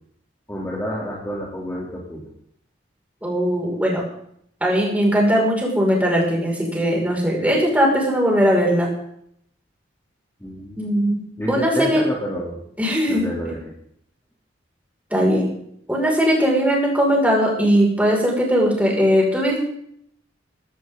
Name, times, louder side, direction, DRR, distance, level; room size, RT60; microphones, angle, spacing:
voice 1, 0.5-2.3 10.4-10.8 11.4-12.6 13.1-13.8, equal, 10° left, -4 dB, 3.2 m, -29 dB
voice 2, 3.2-4.0 4.6-8.9 10.8-11.2 11.5-12.0 12.8-13.3 15.1-15.5 15.9-19.6, equal, 10° right, -2 dB, 5.9 m, -19 dB
19.0 x 17.5 x 4.0 m, 0.69 s
head